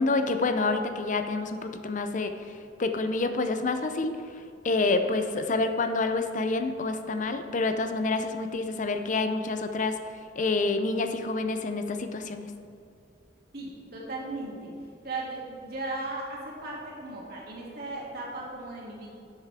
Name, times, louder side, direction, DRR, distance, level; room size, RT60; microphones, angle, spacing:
voice 1, 0.0-2.3 2.8-4.1 4.6-9.9 10.4-12.5, left 3 dB, 45° left, 8 dB, 0.5 m, -27 dB
voice 2, 13.5-14.7 15.0-19.1, right 2 dB, 60° right, -4 dB, 2.5 m, -37 dB
12.0 x 8.1 x 3.6 m, 2.5 s
head